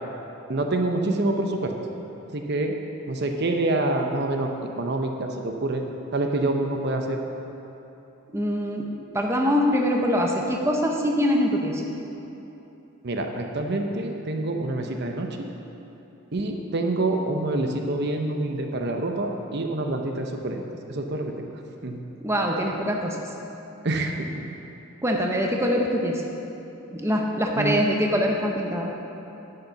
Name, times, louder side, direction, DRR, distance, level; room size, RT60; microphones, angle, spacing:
voice 1, 0.5-1.7 2.3-2.8 3.1-4.5 4.8-5.8 6.1-7.2 13.0-15.5 16.3-20.6 20.9-21.5 21.8-22.0 23.8-24.3 27.6-27.8, right 2 dB, 50° right, 3 dB, 0.8 m, -26 dB
voice 2, 8.3-8.9 9.1-11.8 22.2-23.2 25.0-26.2 26.9-28.9, equal, 10° right, 0 dB, 0.8 m, -23 dB
10.5 x 8.6 x 5.7 m, 3.0 s
head